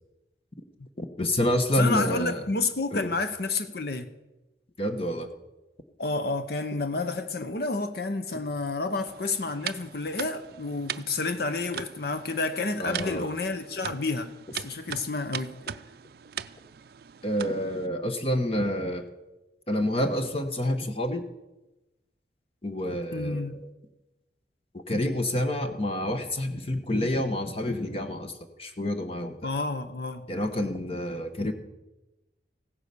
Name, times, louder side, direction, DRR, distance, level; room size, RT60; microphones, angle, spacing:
voice 1, 1.0-2.4 2.9-3.1 4.8-5.3 12.8-13.3 17.2-19.1 19.7-21.2 22.6-23.7 24.7-29.5 30.3-31.5, left 1 dB, 35° left, 1.1 m, -28 dB
voice 2, 1.7-4.1 6.0-15.6 23.1-23.6 29.4-30.3, left 3 dB, 60° left, 0.8 m, -30 dB
sound 1, 9.1-17.9, right 9 dB, 55° right, 0.4 m, -40 dB
16.0 x 9.8 x 6.8 m
head